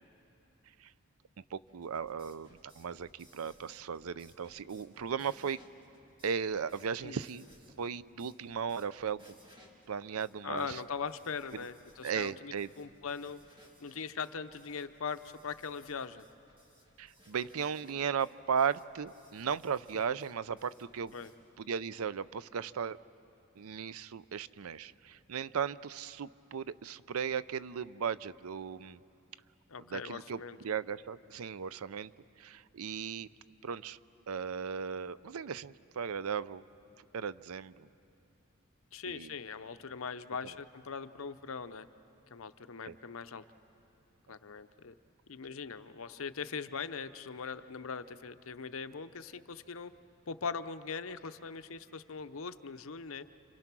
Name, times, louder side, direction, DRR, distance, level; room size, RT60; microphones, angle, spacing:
voice 1, 1.5-5.6 6.2-7.5 7.8-9.3 9.9-10.8 12.0-12.7 17.0-21.2 21.6-23.0 23.6-29.0 29.9-32.1 32.4-33.3 33.6-34.0 34.3-36.6 37.1-37.9 39.1-39.3 42.9-43.0, right 7 dB, 85° right, 17 dB, 0.5 m, -36 dB
sound 1, 1.7-21.4, equal, 25° right, 2.9 m, -63 dB
voice 2, 10.4-13.4 13.8-16.2 21.1-21.3 29.7-30.6 38.9-41.9 42.3-43.4 44.3-44.9 45.3-49.9 50.3-53.3, left 5 dB, 70° left, 11 dB, 0.8 m, -41 dB
29.5 x 26.5 x 6.1 m, 2.9 s
head